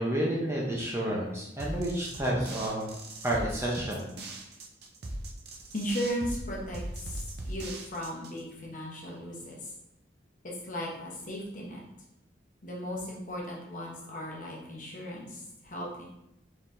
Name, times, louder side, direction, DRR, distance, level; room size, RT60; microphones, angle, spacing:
voice 1, 0.0-2.9 3.2-4.1, right 1 dB, 15° right, -4 dB, 0.6 m, -30 dB
sound 1, 1.6-8.4, right 1 dB, 60° right, 0.6 m, -39 dB
voice 2, 5.7-9.7 10.4-11.8 12.6-16.1, equal, 45° left, -3 dB, 1.0 m, -36 dB
4.5 x 3.8 x 2.6 m, 0.83 s
head